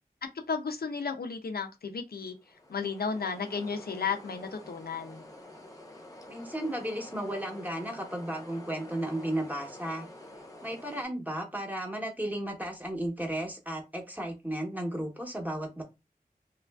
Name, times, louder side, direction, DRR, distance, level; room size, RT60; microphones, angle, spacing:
voice 1, 0.5-2.3 2.7-5.2, left 5 dB, 75° left, 0.5 m, -33 dB
sound 1, 2.4-11.1, left 1 dB, 20° left, 0.7 m, -48 dB
voice 2, 6.3-10.1 10.6-15.8, right 1 dB, 10° right, 0.9 m, -34 dB
3.0 x 2.4 x 2.3 m
wide cardioid pair, 55°, 16 cm